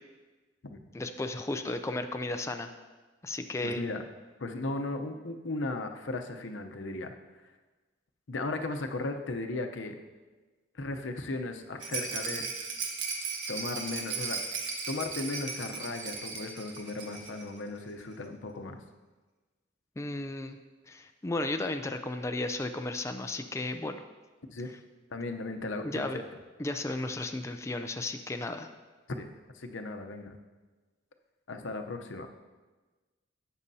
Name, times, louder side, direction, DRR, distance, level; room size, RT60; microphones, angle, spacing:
voice 1, 0.9-2.7 3.2-3.8 20.0-20.6 20.9-24.0 25.8-26.2 26.6-28.7, left 2 dB, 15° left, 6 dB, 0.4 m, -34 dB
voice 2, 3.6-4.0 4.4-7.1 8.3-10.0 10.7-12.5 13.5-14.4 14.9-18.8 24.5-24.7 25.1-26.2 29.2-30.3 31.5-32.3, left 2 dB, 85° left, 5 dB, 0.8 m, -36 dB
Rattle, 11.8-17.5 17.8-17.9 18.1-18.2, right 4 dB, 70° right, 1.3 m, -36 dB
13.0 x 8.3 x 2.7 m, 1.3 s
head